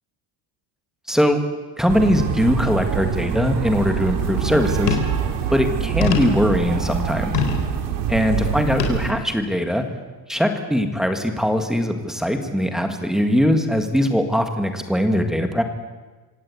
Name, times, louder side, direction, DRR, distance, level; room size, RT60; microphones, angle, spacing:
voice 1, 1.1-1.4 1.8-5.0 5.5-7.4 8.1-9.8 10.3-15.6, equal, ahead, 5 dB, 1.7 m, -21 dB
sound 1, 1.9-9.1, right 8 dB, 75° right, 3.3 m, -25 dB
sound 2, 4.9-5.2 6.0-6.5 7.3-7.7 8.8-9.0 9.7-9.8, left 8 dB, 75° left, 4.0 m, -23 dB
26.0 x 17.5 x 8.5 m, 1.3 s
cardioid pair, 180°, 42 cm